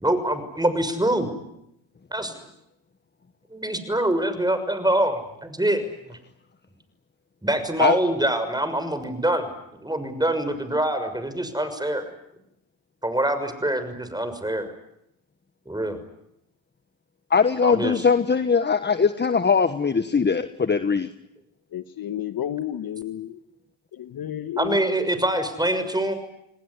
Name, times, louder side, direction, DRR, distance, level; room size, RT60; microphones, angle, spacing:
voice 1, 0.0-1.4 2.1-2.3 3.5-6.2 7.4-9.5 9.8-12.1 13.0-14.7 15.7-16.0 17.6-18.0 24.6-26.1, right 1 dB, 10° right, 10 dB, 6.3 m, -25 dB
voice 2, 17.3-21.1, left 5 dB, 25° left, 11 dB, 1.4 m, -21 dB
voice 3, 21.7-23.4 23.9-24.8, left 11 dB, 55° left, 11 dB, 1.5 m, -31 dB
30.0 x 19.5 x 9.8 m, 0.80 s
supercardioid pair, 60°, 43 cm